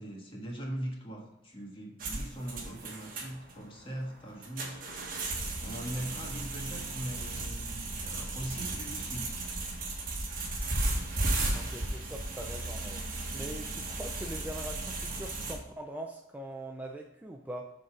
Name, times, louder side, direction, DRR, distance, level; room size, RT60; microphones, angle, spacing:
voice 1, 0.0-4.8 5.6-9.3, right 1 dB, 30° left, -1 dB, 1.6 m, -40 dB
sound 1, 2.0-15.5, right 2 dB, 50° right, 1.6 m, -35 dB
voice 2, 11.5-13.0 13.3-17.7, right 1 dB, 10° right, 2 dB, 0.4 m, -42 dB
8.0 x 4.0 x 5.0 m, 0.84 s
head